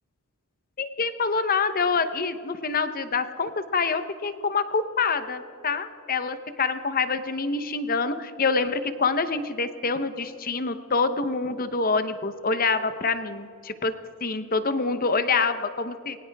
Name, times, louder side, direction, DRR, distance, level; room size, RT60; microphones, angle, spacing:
voice 1, 0.8-13.9 14.2-16.2, left 4 dB, 40° left, 11 dB, 0.9 m, -26 dB
21.0 x 18.5 x 3.5 m, 2.4 s
head